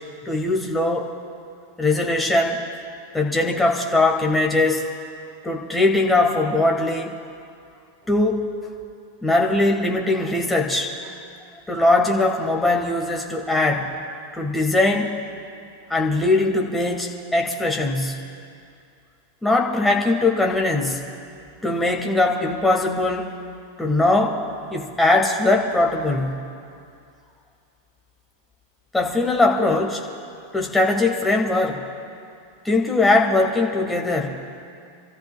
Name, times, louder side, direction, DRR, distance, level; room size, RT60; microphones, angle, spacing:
voice 1, 0.2-1.1 1.8-2.6 3.1-4.9 5.4-7.1 8.1-8.5 9.2-11.1 11.7-13.9 14.3-15.2 15.9-18.2 19.4-21.0 21.6-23.3 23.8-24.4 24.7-26.4 28.9-30.0 30.5-31.8 32.6-34.4, left 2 dB, 10° left, 1 dB, 1.7 m, -20 dB
28.5 x 14.0 x 2.4 m, 2.4 s
figure-of-eight pair, 90°, 0 cm